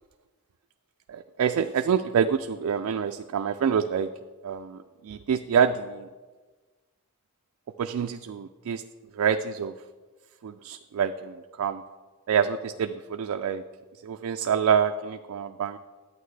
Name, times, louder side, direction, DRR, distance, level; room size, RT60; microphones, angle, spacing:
voice 1, 1.1-4.1 4.4-6.1 7.8-8.8 9.2-9.7 10.4-11.8 12.3-13.6 14.0-15.8, right 7 dB, 70° right, 7 dB, 0.3 m, -26 dB
11.0 x 8.5 x 3.3 m, 1.3 s
head